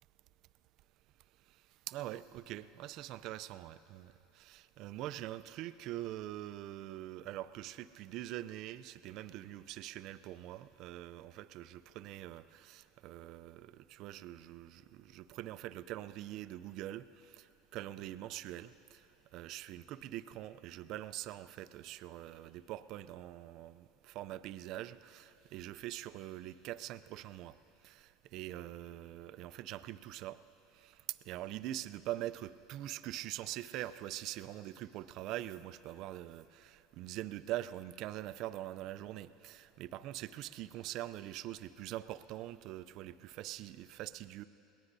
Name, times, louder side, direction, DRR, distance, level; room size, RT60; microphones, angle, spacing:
voice 1, 1.9-17.5 17.7-19.0 19.3-27.5 27.8-30.4 30.7-44.4, right 14 dB, 60° right, 14 dB, 0.4 m, -44 dB
22.0 x 18.5 x 2.7 m, 2.9 s
supercardioid pair, 105°, 0 cm